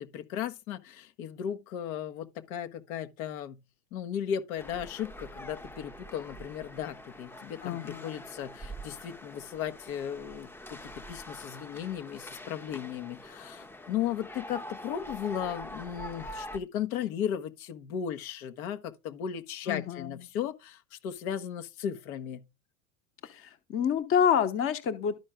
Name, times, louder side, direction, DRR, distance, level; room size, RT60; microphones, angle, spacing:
voice 1, 0.0-3.6 3.9-22.4, left 9 dB, 80° left, 1.4 m, -36 dB
sound 1, 4.6-16.6, equal, 5° left, 0.6 m, -45 dB
voice 2, 7.6-8.2 19.7-20.2 23.2-25.2, left 8 dB, 30° left, 1.0 m, -28 dB
12.5 x 4.6 x 3.7 m
supercardioid pair, 135°, 42 cm